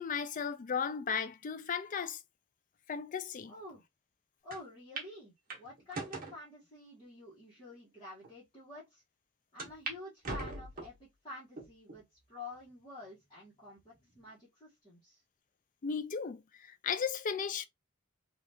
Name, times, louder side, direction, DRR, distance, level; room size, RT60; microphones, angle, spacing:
voice 1, 0.0-2.2 2.9-3.6 15.8-17.7, left 6 dB, 40° left, 0.4 m, -35 dB
voice 2, 3.5-3.8 4.4-9.0 9.5-15.2, left 2 dB, 20° left, 1.1 m, -49 dB
sound 1, 4.5-4.6 5.0-5.1 5.5-6.4 7.0-7.1 7.9-8.0 8.2-8.3 9.6-10.0 10.2-11.0 11.6-12.0 12.5-12.6 13.8-14.2, right 2 dB, 40° right, 1.1 m, -41 dB
3.4 x 2.4 x 2.6 m
head